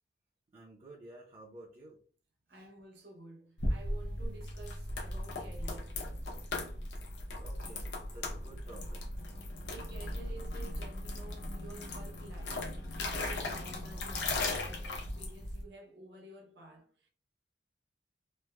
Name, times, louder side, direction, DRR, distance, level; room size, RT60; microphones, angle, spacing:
voice 1, 0.5-2.0 2.5-2.7 7.3-9.0, right 2 dB, 35° right, 0.6 m, -52 dB
voice 2, 2.5-6.0 9.7-17.1, right 2 dB, 70° right, 0.7 m, -52 dB
sound 1, 3.6-15.6, left 2 dB, 75° left, 0.7 m, -37 dB
3.1 x 2.1 x 2.2 m
head